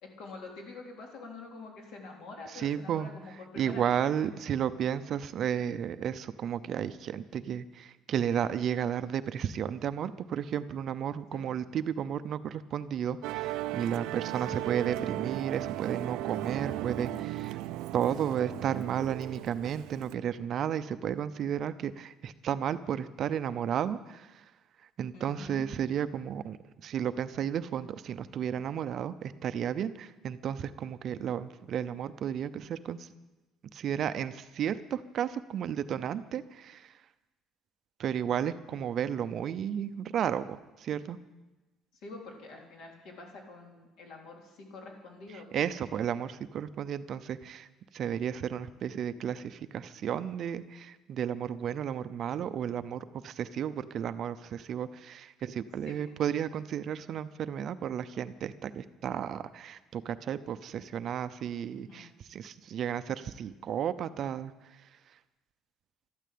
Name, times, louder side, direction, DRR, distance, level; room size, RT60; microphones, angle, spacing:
voice 1, 0.0-3.9 4.2-4.3 11.3-11.5 14.4-14.6 25.1-25.7 42.0-45.5 45.9-46.0 55.9-56.0 61.7-62.1, left 3 dB, 65° left, 1 dB, 3.7 m, -46 dB
voice 2, 2.5-3.1 3.6-17.6 17.9-24.4 25.0-33.1 33.7-37.0 38.0-41.2 45.5-47.7 47.9-64.9, right 9 dB, 40° right, 12 dB, 0.6 m, -33 dB
Musical instrument, 13.2-20.1, right 16 dB, 85° right, 0.5 m, -36 dB
13.0 x 12.5 x 8.5 m, 1.1 s
cardioid pair, 180°, 0 cm